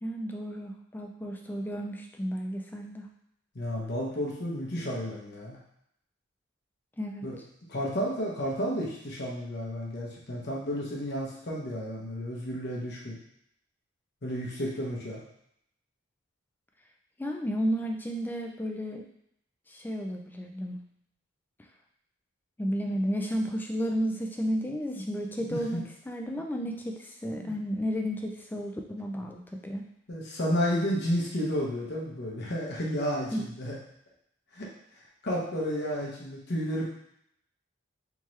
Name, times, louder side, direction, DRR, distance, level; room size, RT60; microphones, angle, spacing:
voice 1, 0.0-3.1 7.0-7.2 17.2-19.1 19.7-20.8 22.6-29.8 33.3-33.4, equal, 10° left, 2 dB, 0.3 m, -32 dB
voice 2, 3.5-5.6 7.2-7.3 7.7-13.2 14.2-15.2 25.4-25.8 27.4-27.5 30.1-33.7 34.5-34.7 35.2-36.8, equal, 55° left, -3 dB, 1.0 m, -32 dB
3.6 x 2.9 x 3.1 m, 0.73 s
head